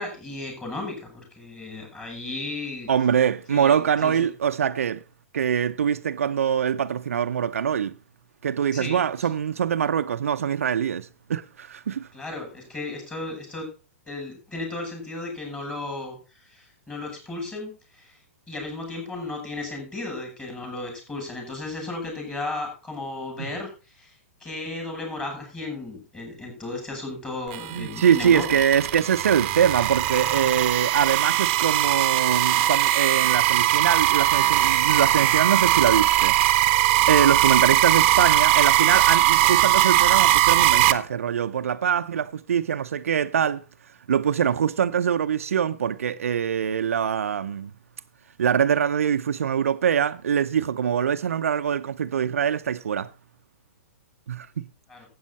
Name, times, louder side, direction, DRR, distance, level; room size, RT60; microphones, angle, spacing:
voice 1, 0.0-2.9 3.5-4.3 8.7-9.3 12.1-13.7 14.1-18.2 18.5-24.1 24.4-28.6 54.9-55.1, left 2 dB, 15° left, 6.8 m, -35 dB
voice 2, 2.9-5.0 5.3-8.0 8.4-12.1 23.4-23.5 27.7-36.4 37.1-43.6 44.1-47.7 48.4-53.1 54.3-54.7, right 8 dB, 70° right, 0.7 m, -23 dB
sound 1, 27.5-40.9, right 14 dB, 45° right, 0.9 m, -20 dB
12.5 x 8.7 x 4.1 m
hypercardioid pair, 115°, 8 cm